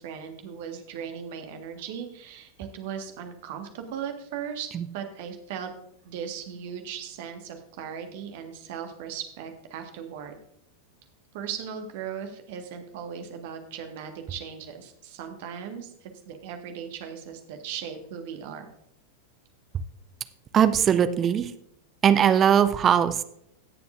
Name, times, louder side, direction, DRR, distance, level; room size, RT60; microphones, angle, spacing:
voice 1, 0.0-4.7 4.9-5.7 6.0-10.3 11.3-18.7, right 8 dB, 50° right, 5 dB, 1.5 m, -38 dB
voice 2, 20.5-21.5 22.0-23.2, right 8 dB, 25° right, 12 dB, 0.6 m, -20 dB
18.5 x 6.9 x 2.6 m, 0.74 s
figure-of-eight pair, 90°, 0 cm